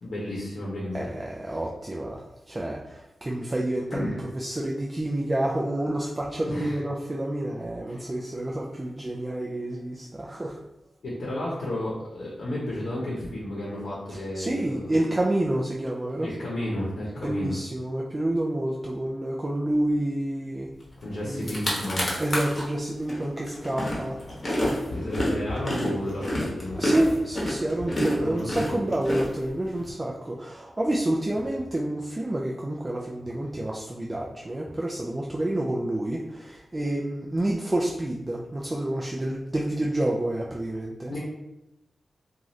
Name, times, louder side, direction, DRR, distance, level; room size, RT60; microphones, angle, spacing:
voice 1, 0.0-1.1 3.9-4.2 6.4-6.8 7.9-8.0 11.0-14.9 16.2-17.6 21.0-22.1 24.9-27.1 28.2-28.9 41.1-41.2, left 1 dB, 80° left, -6 dB, 0.8 m, -32 dB
voice 2, 0.9-10.6 14.1-16.3 17.2-20.7 21.3-21.5 22.2-24.2 26.8-41.1, right 1 dB, 25° right, -2 dB, 0.3 m, -28 dB
sound 1, 21.0-21.1 21.3-22.6 23.1-29.8, equal, 35° left, 0.9 m, -29 dB
2.6 x 2.4 x 3.1 m, 0.93 s
wide cardioid pair, 90°, 0 cm